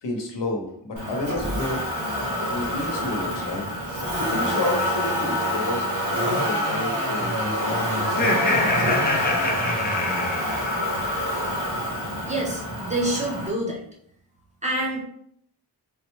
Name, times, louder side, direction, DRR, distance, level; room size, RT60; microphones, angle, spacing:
voice 1, 0.0-1.9 2.4-3.7 4.2-5.9 6.2-8.2, left 2 dB, 85° left, 1 dB, 0.8 m, -30 dB
Motor vehicle (road), 1.0-13.5, equal, 45° right, 1.1 m, -27 dB
Laughter, 8.0-11.3, left 2 dB, 25° left, 0.5 m, -25 dB
voice 2, 12.3-13.8 14.6-15.0, right 1 dB, 15° right, -2 dB, 0.7 m, -27 dB
3.8 x 2.1 x 3.0 m, 0.67 s
wide cardioid pair, 155°, 41 cm